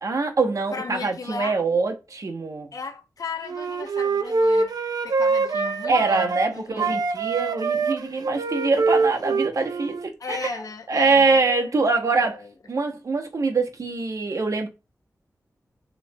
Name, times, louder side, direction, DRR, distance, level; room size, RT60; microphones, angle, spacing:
voice 1, 0.0-2.7 5.9-10.6 10.9-12.4 12.7-14.7, right 3 dB, 60° right, 1.0 m, -24 dB
voice 2, 0.7-1.6 2.7-4.7 5.0-7.0 10.2-11.5 12.0-12.5, left 4 dB, 65° left, 0.8 m, -36 dB
Wind instrument woodwind instrument, 3.5-6.5 6.8-10.1, right 4 dB, 85° right, 0.6 m, -24 dB
6.9 x 3.1 x 2.2 m
wide cardioid pair, 105°, 6 cm